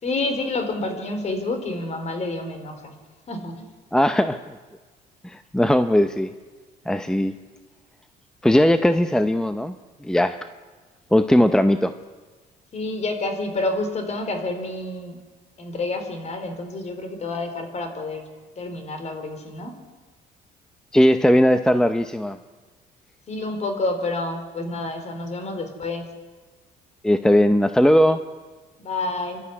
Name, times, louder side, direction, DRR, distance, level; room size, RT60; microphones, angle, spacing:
voice 1, 0.0-3.0 3.3-3.7 12.7-15.2 15.6-18.2 18.6-19.7 23.3-26.1 28.8-29.4, left 2 dB, 40° left, 7 dB, 4.2 m, -28 dB
voice 2, 3.9-4.6 5.2-6.3 6.9-7.3 8.4-9.7 10.0-10.4 11.1-11.9 20.9-22.4 27.0-28.2, equal, 5° left, 10 dB, 0.7 m, -18 dB
27.0 x 12.5 x 9.8 m, 1.3 s
cardioid pair, 110°, 17 cm